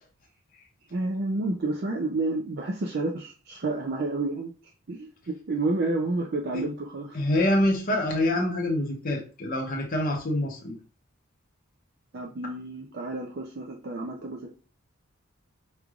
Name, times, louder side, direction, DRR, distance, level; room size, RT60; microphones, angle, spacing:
voice 1, 0.9-4.5 4.9-7.2 12.1-14.5, right 2 dB, 50° right, 1 dB, 0.5 m, -30 dB
voice 2, 7.1-10.8, left 1 dB, 40° left, 0 dB, 0.7 m, -26 dB
5.0 x 3.1 x 2.4 m, 0.37 s
head